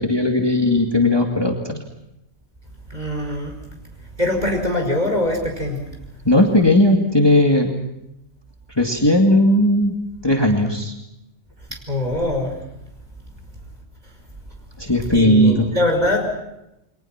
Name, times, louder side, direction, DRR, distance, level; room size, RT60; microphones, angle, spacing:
voice 1, 0.0-1.8 6.3-7.7 8.7-10.0 10.2-10.9 14.8-15.7, left 1 dB, 20° left, 2 dB, 2.3 m, -17 dB
voice 2, 2.9-3.6 4.2-5.8 11.7-12.5 15.0-16.4, left 1 dB, 35° right, 2 dB, 5.7 m, -22 dB
29.5 x 23.0 x 6.0 m, 0.86 s
omnidirectional pair, 1.3 m